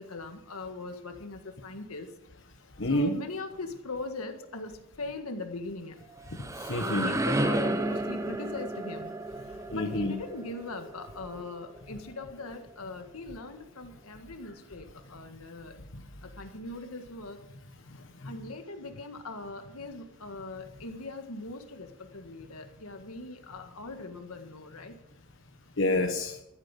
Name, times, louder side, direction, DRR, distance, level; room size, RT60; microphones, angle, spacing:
voice 1, 0.0-2.1 2.8-6.0 6.8-9.1 9.5-15.8 16.2-17.4 18.2-25.0, left 2 dB, 85° left, 6 dB, 1.7 m, -40 dB
voice 2, 2.8-3.1 6.3-7.1 9.7-10.1 18.2-18.3 25.8-26.4, left 1 dB, 60° left, 3 dB, 1.3 m, -28 dB
sound 1, 6.0-11.8, right 1 dB, 15° right, 0.6 m, -32 dB
13.5 x 9.0 x 7.5 m, 0.85 s
head